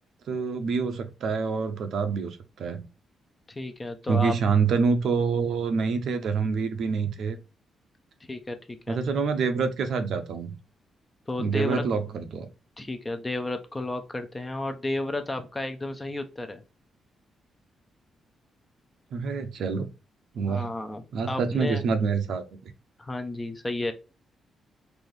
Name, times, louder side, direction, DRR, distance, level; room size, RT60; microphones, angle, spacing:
voice 1, 0.3-2.8 4.1-7.4 8.9-10.6 11.4-12.5 19.1-19.9 20.3-20.7 21.1-22.4, right 5 dB, 65° right, 0.7 m, -26 dB
voice 2, 3.6-4.3 8.3-8.6 8.9-9.0 11.3-11.8 12.8-16.6 20.5-21.8 23.0-23.9, left 2 dB, 15° left, 0.6 m, -32 dB
4.1 x 2.7 x 3.1 m
cardioid pair, 140°, 0 cm